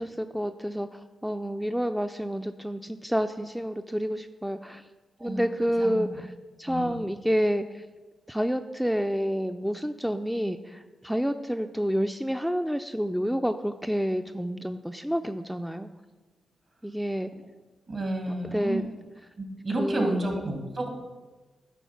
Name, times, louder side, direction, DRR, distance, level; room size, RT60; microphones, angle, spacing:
voice 1, 0.0-4.9 5.2-6.3 6.6-7.8 8.3-15.9 16.8-17.3 18.4-18.8 19.8-20.2, equal, 5° right, 8 dB, 0.3 m, -29 dB
voice 2, 6.6-7.0 17.9-18.9 19.4-20.9, right 1 dB, 50° right, 1 dB, 2.1 m, -30 dB
9.2 x 3.9 x 5.7 m, 1.2 s
cardioid pair, 60°, 0 cm